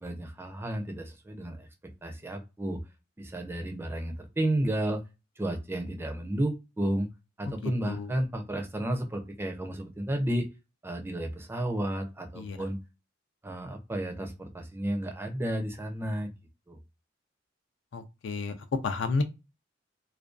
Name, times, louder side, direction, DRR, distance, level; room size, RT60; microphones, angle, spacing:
voice 1, 0.0-1.7 2.0-2.8 3.2-5.0 5.4-7.1 7.4-10.5 10.8-12.8 13.4-16.3 16.7-16.8, right 1 dB, 10° right, 0.4 m, -32 dB
voice 2, 7.4-8.1 12.4-12.6 17.9-18.5 18.8-19.2, left 4 dB, 70° left, 0.4 m, -32 dB
2.5 x 2.2 x 2.3 m
head